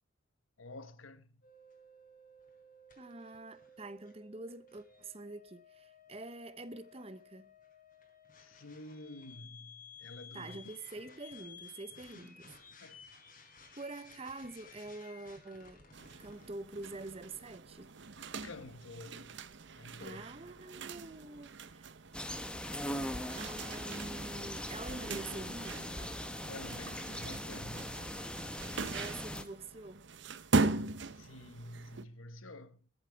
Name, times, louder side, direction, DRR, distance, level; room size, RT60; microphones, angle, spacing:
voice 1, 0.6-1.4 8.3-10.6 12.8-13.0 18.4-20.5 26.1-28.1 31.1-32.9, left 2 dB, 80° left, 1.2 m, -50 dB
sound 1, 1.4-16.5, left 4 dB, 40° left, 4.1 m, -56 dB
voice 2, 3.0-7.5 10.3-12.5 13.8-15.8 16.2-17.9 20.0-22.0 23.4-26.0 28.9-30.1, right 2 dB, 30° right, 0.9 m, -46 dB
sound 2, 15.9-32.0, right 3 dB, 60° right, 0.8 m, -40 dB
sound 3, 22.1-29.4, equal, 5° left, 1.1 m, -40 dB
22.0 x 8.6 x 4.6 m
head